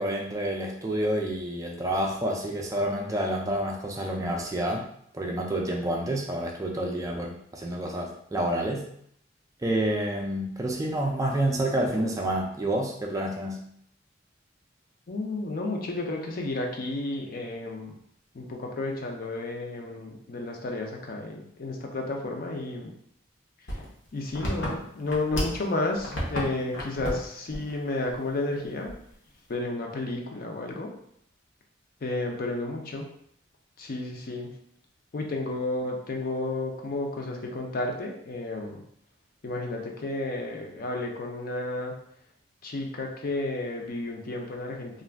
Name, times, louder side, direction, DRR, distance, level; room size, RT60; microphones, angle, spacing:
voice 1, 0.0-4.9 5.1-8.9 9.6-13.6, right 1 dB, 15° right, 0 dB, 0.3 m, -28 dB
voice 2, 15.1-18.0 18.3-22.9 23.7-23.8 24.1-29.0 29.5-30.9 32.0-33.1 33.8-34.5 35.1-38.8 39.4-42.0 42.6-45.0, left 2 dB, 50° left, 1 dB, 0.5 m, -32 dB
sound 1, 23.7-25.7 26.0-26.4 26.7-27.2 27.5-27.7 28.1-28.2 28.9-29.3, equal, 75° left, 0.9 m, -31 dB
2.4 x 2.2 x 3.3 m, 0.69 s
head